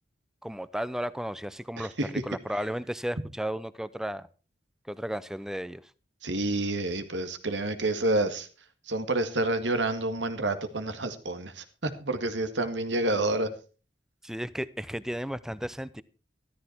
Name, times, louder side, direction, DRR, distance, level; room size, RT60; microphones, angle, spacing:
voice 1, 0.4-1.9 2.2-4.3 4.9-5.8 14.2-16.0, equal, 5° right, 17 dB, 0.6 m, -34 dB
voice 2, 1.8-2.1 6.2-8.5 8.9-13.5, right 2 dB, 85° right, 9 dB, 1.9 m, -29 dB
13.5 x 13.5 x 4.5 m, 0.35 s
head